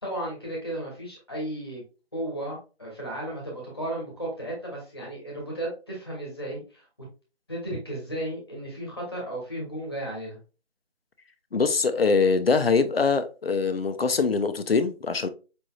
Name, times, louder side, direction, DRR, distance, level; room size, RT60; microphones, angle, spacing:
voice 1, 0.0-1.8 2.1-6.8 7.5-10.4, right 1 dB, 20° left, 1.2 m, -34 dB
voice 2, 11.5-15.3, left 4 dB, 60° left, 0.6 m, -23 dB
5.1 x 3.2 x 2.3 m
figure-of-eight pair, 175°, 33 cm